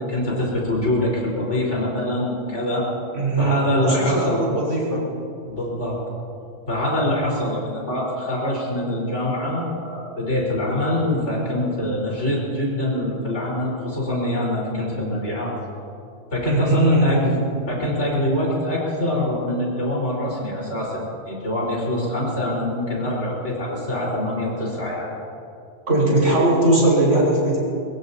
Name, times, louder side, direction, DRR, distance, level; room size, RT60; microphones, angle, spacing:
voice 1, 0.0-2.9 3.4-4.4 5.5-6.0 6.7-15.5 16.3-25.1, left 1 dB, 75° left, -4 dB, 5.1 m, -24 dB
voice 2, 3.1-5.0 16.4-17.2 25.9-27.6, right 1 dB, 80° right, -5 dB, 5.7 m, -19 dB
23.0 x 22.0 x 2.9 m, 2.5 s
omnidirectional pair, 1.2 m